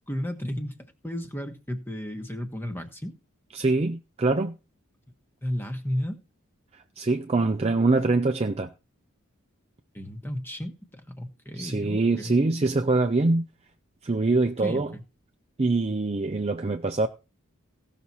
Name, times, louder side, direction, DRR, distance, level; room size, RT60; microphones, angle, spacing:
voice 1, 0.1-0.7 1.0-3.1 5.4-6.2 9.9-12.4 14.6-15.0, equal, 10° left, 1.2 m, -33 dB
voice 2, 3.5-4.5 7.0-8.7 11.6-13.5 14.0-14.9 15.6-17.1, right 3 dB, 30° right, 0.5 m, -24 dB
16.5 x 6.0 x 4.2 m
head